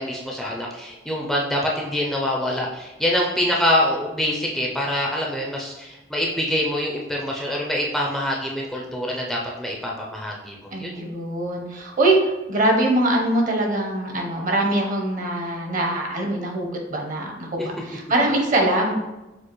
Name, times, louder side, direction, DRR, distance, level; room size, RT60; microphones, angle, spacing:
voice 1, 0.0-11.0 17.6-17.7, left 1 dB, ahead, -3 dB, 0.4 m, -25 dB
voice 2, 10.7-18.9, right 1 dB, 45° right, 1 dB, 0.8 m, -23 dB
6.4 x 2.4 x 3.0 m, 1.0 s
head